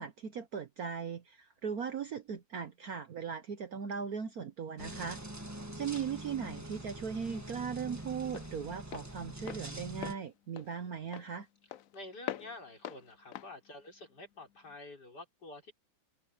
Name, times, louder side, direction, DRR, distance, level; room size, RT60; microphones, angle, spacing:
voice 1, 0.0-5.2 5.8-11.5, right 7 dB, 55° right, 1.3 m, -38 dB
sound 1, 4.8-10.1, right 1 dB, 10° right, 1.4 m, -44 dB
Walk footsteps, 6.1-14.7, left 12 dB, 75° left, 0.7 m, -47 dB
voice 2, 11.9-15.7, left 2 dB, 50° left, 5.3 m, -48 dB
omnidirectional pair, 2.2 m